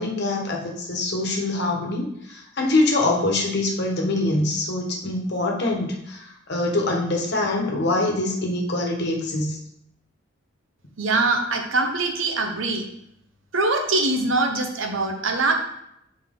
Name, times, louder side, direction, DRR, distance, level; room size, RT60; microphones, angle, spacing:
voice 1, 0.0-9.6, left 2 dB, 60° left, 0 dB, 1.3 m, -24 dB
voice 2, 11.0-12.8 13.5-15.6, right 3 dB, 90° right, 4 dB, 0.9 m, -23 dB
7.5 x 4.2 x 3.7 m, 0.78 s
head